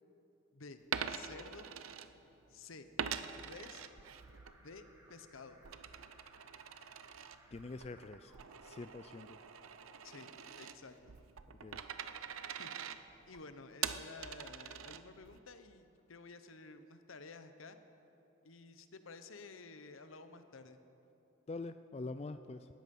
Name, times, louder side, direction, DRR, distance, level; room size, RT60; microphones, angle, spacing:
Coin (dropping), 0.8-2.5 3.0-4.6 4.9-15.4, right 7 dB, 90° right, 0.7 m, -44 dB
voice 1, 1.1-1.7 2.5-2.9 3.4-3.9 4.6-4.8 5.1-5.6 10.0-10.3 10.6-11.1 12.6-12.7 13.3-17.8 18.4-20.8, left 4 dB, 80° left, 9 dB, 1.0 m, -52 dB
Alarm, 3.2-11.1, right 1 dB, 15° right, 1.6 m, -65 dB
voice 2, 7.5-8.3 8.6-9.4 11.6-11.8 21.5-22.7, left 3 dB, 30° left, 10 dB, 0.3 m, -45 dB
19.0 x 14.0 x 5.4 m, 2.9 s
head